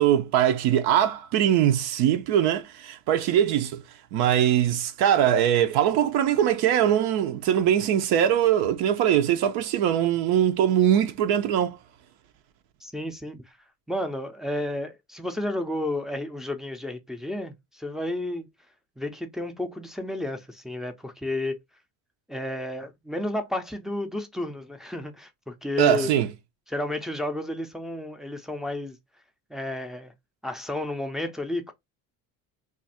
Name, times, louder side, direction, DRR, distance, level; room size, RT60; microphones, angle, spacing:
voice 1, 0.0-3.8 4.1-11.8 25.8-26.3, right 10 dB, 80° right, 0.7 m, -22 dB
voice 2, 12.8-13.6 13.9-18.5 19.0-21.6 22.3-26.1 26.7-29.0 29.5-30.1 30.4-31.7, left 1 dB, ahead, 0.4 m, -32 dB
2.5 x 2.4 x 4.1 m
cardioid pair, 125°, 37 cm